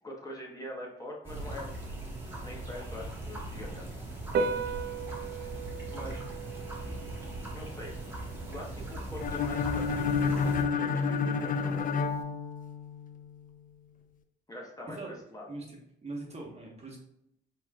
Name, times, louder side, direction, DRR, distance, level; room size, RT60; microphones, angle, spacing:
voice 1, 0.0-1.8 2.4-3.9 5.9-6.2 7.5-8.1 8.4-11.9 14.5-15.0 15.3-15.5, left 1 dB, 20° left, -2 dB, 1.1 m, -43 dB
sound 1, 1.2-10.6, right 1 dB, 10° right, 1.5 m, -40 dB
Piano, 4.2-12.2, right 5 dB, 55° right, 0.5 m, -39 dB
sound 2, 9.2-13.1, left 5 dB, 45° left, 0.5 m, -29 dB
voice 2, 15.5-17.0, right 2 dB, 30° right, -1 dB, 1.3 m, -42 dB
4.5 x 4.3 x 2.4 m, 0.77 s
cardioid pair, 90°, 20 cm